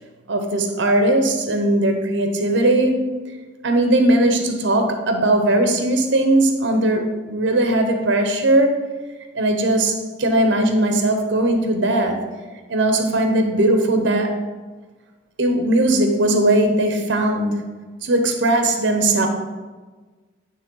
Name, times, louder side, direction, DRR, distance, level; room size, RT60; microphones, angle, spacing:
voice 1, 0.3-3.3 3.6-8.8 9.3-12.2 12.7-14.4 15.4-17.5 18.0-19.3, right 1 dB, 65° right, 4 dB, 0.9 m, -19 dB
9.5 x 3.3 x 3.8 m, 1.3 s
head